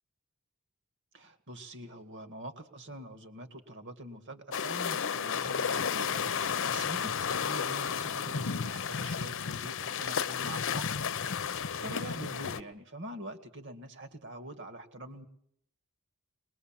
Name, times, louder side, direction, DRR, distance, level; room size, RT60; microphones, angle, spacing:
voice 1, 1.1-11.0 11.4-15.3, right 1 dB, 55° right, 7 dB, 2.1 m, -45 dB
sound 1, 4.5-12.6, left 7 dB, 60° left, 0.8 m, -32 dB
22.5 x 21.0 x 7.5 m, 0.71 s
head